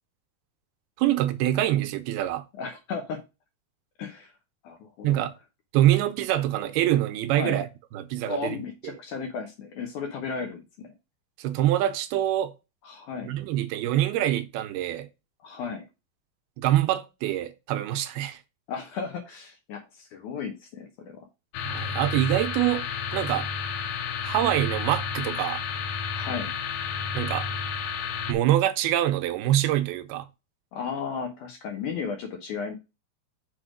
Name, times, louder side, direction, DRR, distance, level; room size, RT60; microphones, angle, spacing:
voice 1, 1.0-2.4 5.0-5.3 5.7-7.7 7.9-8.6 11.4-12.5 13.2-15.1 16.6-18.4 21.6-22.9 23.1-23.5 24.2-25.6 27.1-27.5 28.3-30.3, right 13 dB, 85° right, 2.6 m, -25 dB
voice 2, 2.6-3.2 4.0-4.3 4.6-5.2 7.4-7.6 8.3-10.9 12.8-13.3 15.4-15.9 18.7-21.3 26.1-26.5 30.7-32.8, left 5 dB, 70° left, 1.9 m, -34 dB
sound 1, 21.5-28.3, left 6 dB, 90° left, 2.9 m, -31 dB
6.3 x 4.2 x 5.0 m
omnidirectional pair, 4.5 m